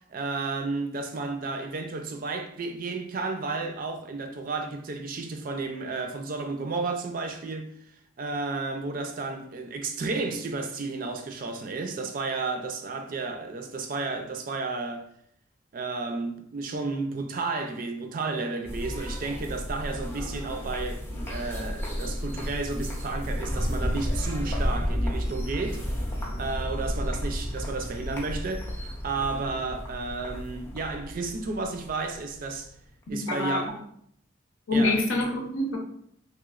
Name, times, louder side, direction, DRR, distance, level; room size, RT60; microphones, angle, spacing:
voice 1, 0.0-7.7 8.2-15.1 15.7-26.0 26.4-32.7 33.1-33.7 34.7-35.0, right 3 dB, 45° right, 0.4 m, -32 dB
sound 1, 18.6-33.0, equal, 10° left, 0.5 m, -32 dB
voice 2, 33.1-33.8 34.7-35.8, left 2 dB, 85° left, 0.8 m, -26 dB
3.2 x 3.0 x 2.4 m
head